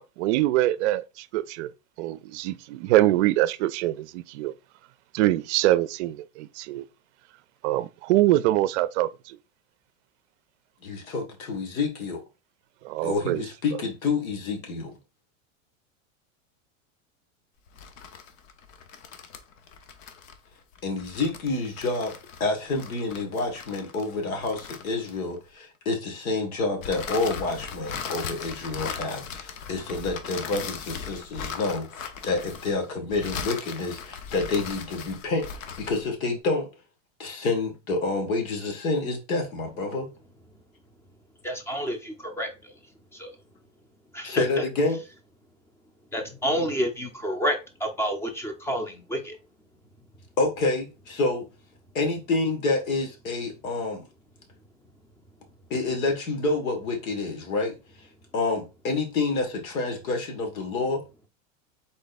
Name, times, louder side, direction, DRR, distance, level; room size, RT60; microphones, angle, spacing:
voice 1, 0.0-1.7 2.0-4.5 5.1-6.8 7.6-9.4 12.8-13.5, right 15 dB, 60° right, 0.5 m, -24 dB
voice 2, 10.8-12.2 13.0-14.9 20.8-22.1 22.4-35.4 35.8-36.7 37.2-40.1 44.2-45.0 50.4-51.5 51.9-54.0 55.7-57.7 58.3-61.0, left 3 dB, 85° left, 2.1 m, -28 dB
sound 1, 17.7-25.5 26.8-36.1, left 6 dB, 70° left, 1.0 m, -38 dB
voice 3, 41.4-42.8 43.1-43.4 44.1-44.6 46.1-49.4, equal, 5° left, 0.6 m, -29 dB
4.0 x 3.3 x 4.1 m
supercardioid pair, 140°, 40 cm